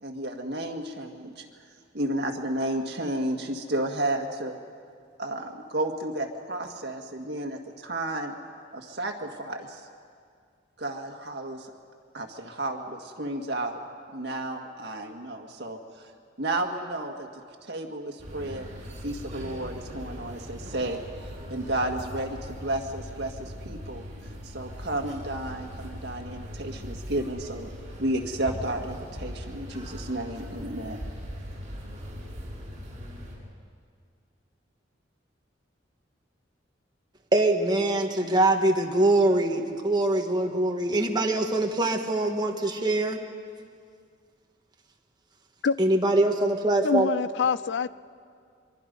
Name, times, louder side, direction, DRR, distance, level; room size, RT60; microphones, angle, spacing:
voice 1, 0.0-1.5 1.9-4.6 5.2-8.3 8.7-9.9 10.8-11.7 12.1-13.8 14.1-16.1 16.4-17.3 17.6-18.7 19.0-27.7 28.0-31.0, right 1 dB, 60° right, 3 dB, 2.0 m, -32 dB
sound 1, 18.2-33.3, equal, 40° right, 6.7 m, -40 dB
voice 2, 37.3-43.2 45.8-47.1, right 2 dB, 25° right, 2 dB, 1.6 m, -23 dB
voice 3, 46.8-47.9, left 6 dB, 65° left, 17 dB, 0.4 m, -25 dB
24.5 x 24.0 x 5.4 m, 2.2 s
head